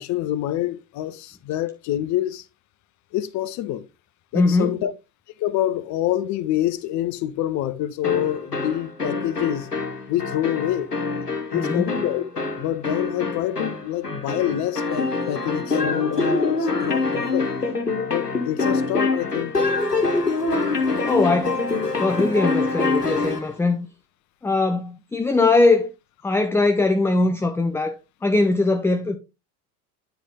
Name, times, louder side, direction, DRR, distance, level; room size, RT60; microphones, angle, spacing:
voice 1, 0.0-2.4 3.1-3.8 4.3-4.9 5.4-9.7 10.1-10.9 11.5-17.5 18.1-19.5, left 13 dB, 40° left, 0.9 m, -26 dB
voice 2, 4.3-4.8 11.5-11.9 21.0-21.6 22.0-23.9 24.4-25.9 26.2-28.0 28.2-29.2, left 3 dB, 5° left, 0.5 m, -21 dB
sound 1, 8.0-23.5, left 3 dB, 90° left, 1.2 m, -25 dB
9.9 x 4.6 x 3.6 m
figure-of-eight pair, 70°, 46 cm